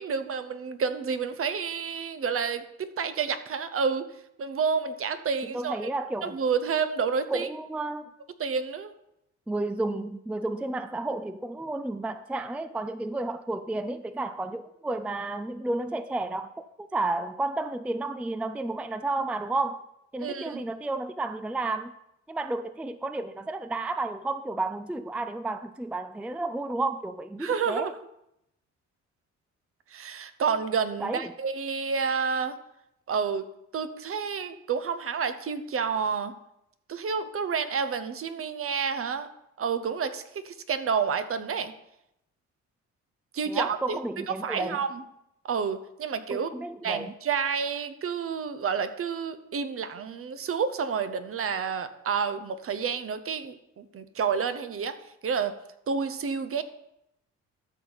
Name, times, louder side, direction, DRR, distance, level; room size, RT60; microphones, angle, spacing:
voice 1, 0.0-4.1 4.4-5.8 6.2-7.5 8.4-8.9 20.2-20.6 27.4-27.9 29.9-32.6 33.1-33.4 33.7-36.3 36.9-39.3 39.6-41.7 43.3-45.0 45.4-46.5 46.8-55.0 55.2-55.5 55.9-56.6, right 6 dB, 50° right, 0.9 m, -29 dB
voice 2, 5.5-6.4 7.3-8.1 9.5-19.8 20.1-21.9 22.3-27.9 31.0-31.3 43.5-44.8 46.3-47.1, right 2 dB, 5° right, 0.4 m, -32 dB
13.0 x 6.1 x 4.0 m
cardioid pair, 90°, 30 cm